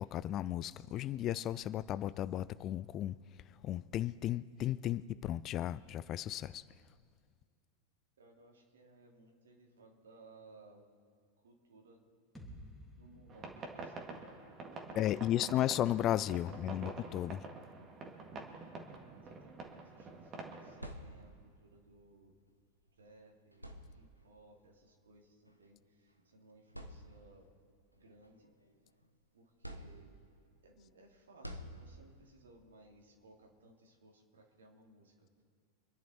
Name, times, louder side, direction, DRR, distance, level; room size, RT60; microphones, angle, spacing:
voice 1, 0.0-3.2 3.6-6.6 15.0-17.4, left 12 dB, 35° left, 0.4 m, -34 dB
voice 2, 8.2-10.9 11.4-12.0 13.0-14.2 14.6-15.6 16.2-16.7 18.2-18.7 19.2-22.3 23.0-27.5 27.9-28.5 29.3-30.2 30.6-35.4, right 2 dB, 65° right, 2.6 m, -61 dB
sound 1, 12.3-16.2, equal, ahead, 2.7 m, -57 dB
sound 2, 13.3-20.9, right 3 dB, 30° right, 1.9 m, -47 dB
sound 3, 20.6-21.6 22.9-23.0 23.5-24.4 25.5-25.6 26.2-26.3 26.7-27.5 28.0-29.1 29.6-30.4 31.4-32.3, equal, 90° right, 1.1 m, -49 dB
26.0 x 10.5 x 4.3 m
figure-of-eight pair, 90°, 0 cm